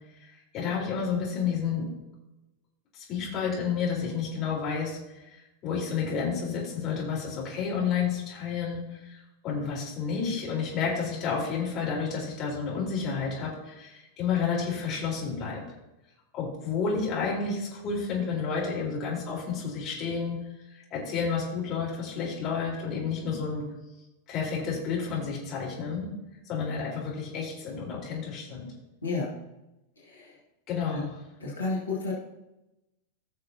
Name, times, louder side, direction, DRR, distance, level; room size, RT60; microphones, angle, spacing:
voice 1, 0.2-1.9 2.9-15.6 16.3-20.4 20.7-23.6 24.3-26.1 26.5-28.7 30.7-31.1, left 6 dB, 35° left, -3 dB, 4.0 m, -30 dB
voice 2, 29.0-29.3 30.0-30.4 30.9-31.0 31.4-32.1, left 3 dB, 75° left, -5 dB, 2.1 m, -32 dB
16.5 x 6.4 x 2.8 m, 0.96 s
figure-of-eight pair, 90°, 0 cm